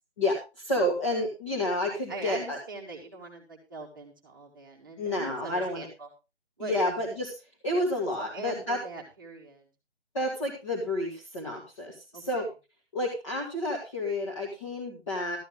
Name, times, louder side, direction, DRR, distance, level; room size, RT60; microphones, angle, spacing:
voice 1, 0.2-2.6 5.0-5.9 6.6-7.3 7.6-8.8 10.1-12.5 12.9-15.4, left 1 dB, 25° left, -2 dB, 2.4 m, -30 dB
voice 2, 2.1-6.1 6.6-6.8 8.2-9.6 12.1-12.4, right 3 dB, 20° right, -1 dB, 1.5 m, -42 dB
13.0 x 10.0 x 3.7 m, 0.28 s
hypercardioid pair, 175°, 34 cm